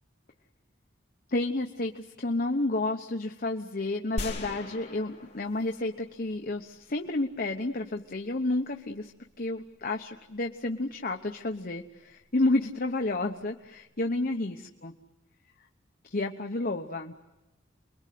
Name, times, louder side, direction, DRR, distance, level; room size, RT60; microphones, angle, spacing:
voice 1, 1.3-9.1 9.4-14.9 16.0-17.1, left 2 dB, 45° left, 4 dB, 1.0 m, -31 dB
sound 1, 4.2-6.4, left 1 dB, 30° left, 3.1 m, -38 dB
29.5 x 22.5 x 7.7 m, 0.95 s
head